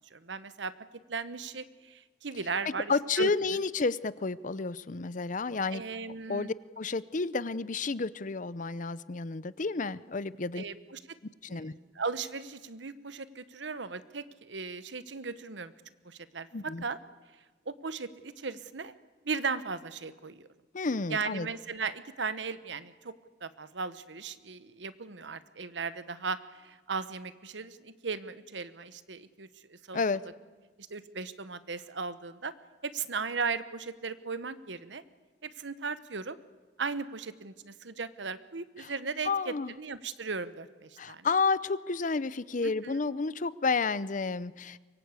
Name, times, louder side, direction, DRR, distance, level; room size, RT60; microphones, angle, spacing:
voice 1, 0.1-0.7 1.1-3.6 5.7-6.5 10.5-11.0 11.5-11.7 11.9-15.7 16.0-17.0 17.7-18.9 19.2-20.5 21.1-23.1 23.4-30.0 30.8-32.5 32.8-35.0 35.4-36.4 36.8-41.3 42.6-42.9, right 4 dB, 75° right, 14 dB, 1.1 m, -37 dB
voice 2, 2.9-5.8 6.3-10.6 11.4-11.7 16.5-16.8 20.7-21.5 29.9-30.2 38.8-38.9 39.2-39.7 41.0-44.8, left 4 dB, 45° left, 17 dB, 0.7 m, -31 dB
24.5 x 22.5 x 8.3 m, 1.3 s
head